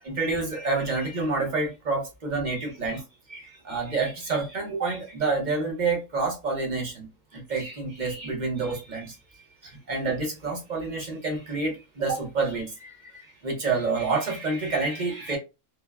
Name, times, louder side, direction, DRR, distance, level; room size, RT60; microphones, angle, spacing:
voice 1, 0.0-3.0 3.3-9.2 9.6-15.4, right 3 dB, 40° right, 0.7 m, -28 dB
3.2 x 2.2 x 2.3 m
omnidirectional pair, 1.6 m